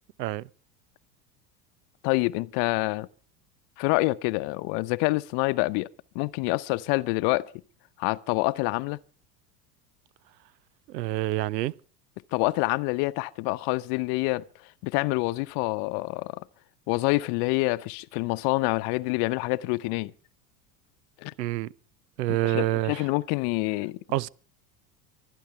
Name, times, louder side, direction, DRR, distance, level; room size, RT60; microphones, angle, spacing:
voice 1, 2.0-3.1 3.8-5.9 6.1-7.5 8.0-9.0 12.3-14.4 14.8-16.4 16.9-20.1 21.2-21.3 22.4-24.0, left 23 dB, 50° left, 0.8 m, -27 dB
voice 2, 10.9-11.7 21.4-21.7 22.2-23.1 24.1-24.3, right 16 dB, 80° right, 0.7 m, -27 dB
24.0 x 10.0 x 5.7 m
hypercardioid pair, 80°, 49 cm